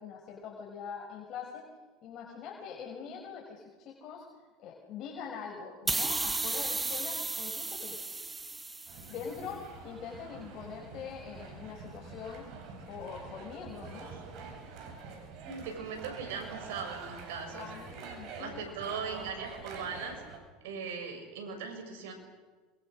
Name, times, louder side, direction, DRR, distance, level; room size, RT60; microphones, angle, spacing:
voice 1, 0.0-1.6 2.0-4.2 4.6-8.0 9.1-12.5 12.9-14.1 17.5-18.8, left 6 dB, 50° left, -1 dB, 5.7 m, -43 dB
sound 1, 5.9-9.3, right 3 dB, 15° right, 1.5 m, -34 dB
sound 2, 8.9-20.4, right 5 dB, 55° right, 7.3 m, -46 dB
voice 2, 15.4-17.7 18.4-20.2 20.6-22.1, right 5 dB, 75° right, 4 dB, 7.1 m, -39 dB
27.5 x 23.5 x 6.6 m, 1.3 s
supercardioid pair, 100°, 0 cm